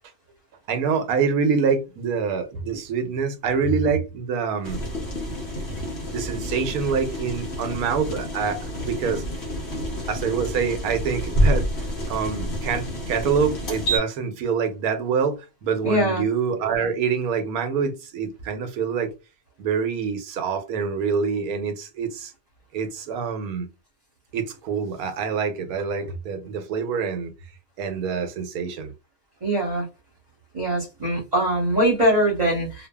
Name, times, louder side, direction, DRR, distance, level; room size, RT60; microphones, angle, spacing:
voice 1, 0.7-4.8 6.1-9.2 10.1-11.7 12.1-19.1 19.6-22.3 22.7-23.7 24.3-27.3 27.8-28.9 32.6-32.7, right 6 dB, 75° right, 1.1 m, -26 dB
sound 1, 4.6-14.0, equal, 50° left, 0.9 m, -28 dB
voice 2, 15.8-16.2 29.4-29.8 30.5-32.9, right 1 dB, 30° right, 1.0 m, -22 dB
2.6 x 2.4 x 2.2 m
omnidirectional pair, 1.6 m